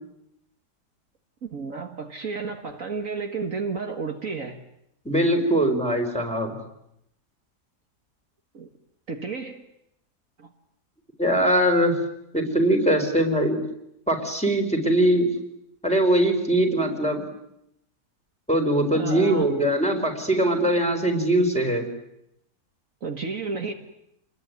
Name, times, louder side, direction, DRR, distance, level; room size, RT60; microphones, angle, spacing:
voice 1, 1.4-4.6 8.5-8.7 9.1-9.6 10.4-10.5 18.9-19.5 23.0-23.7, right 4 dB, 55° right, 4 dB, 2.0 m, -32 dB
voice 2, 5.0-6.5 11.2-11.9 12.3-13.6 14.1-15.3 15.8-17.2 18.5-21.9, right 1 dB, 5° left, 2 dB, 4.3 m, -21 dB
29.0 x 21.5 x 9.4 m, 0.80 s
omnidirectional pair, 1.8 m